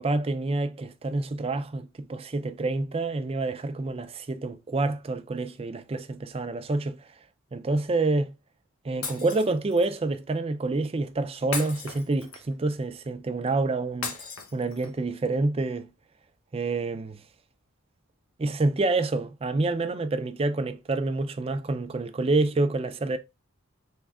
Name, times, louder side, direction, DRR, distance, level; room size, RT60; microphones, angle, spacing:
voice 1, 0.0-7.0 7.5-8.3 8.8-14.3 14.5-15.9 16.5-17.2 18.4-23.2, right 2 dB, 25° right, 0.4 m, -27 dB
Shatter, 9.0-9.9 11.5-12.6 14.0-15.0, left 5 dB, 80° left, 1.0 m, -36 dB
3.6 x 3.2 x 3.4 m
head